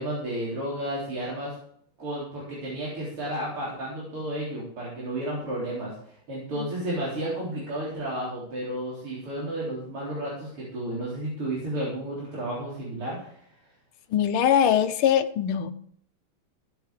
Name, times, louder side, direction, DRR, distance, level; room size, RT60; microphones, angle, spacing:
voice 1, 0.0-1.6 2.0-13.3, right 1 dB, 80° right, -6 dB, 4.8 m, -32 dB
voice 2, 14.1-15.7, left 9 dB, 75° left, 11 dB, 1.7 m, -22 dB
16.5 x 8.2 x 4.9 m, 0.64 s
omnidirectional pair, 2.4 m